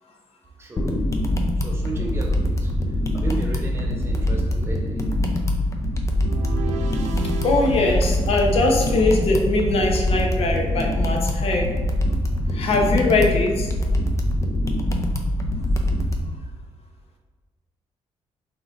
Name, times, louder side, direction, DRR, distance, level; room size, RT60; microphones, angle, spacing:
voice 1, 0.6-1.0 1.6-2.7 3.1-5.0, right 2 dB, 20° right, -1 dB, 0.9 m, -34 dB
sound 1, 0.8-16.2, left 1 dB, 25° left, 0.5 m, -23 dB
sound 2, 6.2-9.4, right 5 dB, 85° right, 0.4 m, -36 dB
voice 2, 7.4-11.7 12.5-13.7, left 2 dB, 55° left, 1 dB, 0.8 m, -21 dB
4.0 x 3.7 x 3.5 m, 1.4 s
cardioid pair, 140°, 12 cm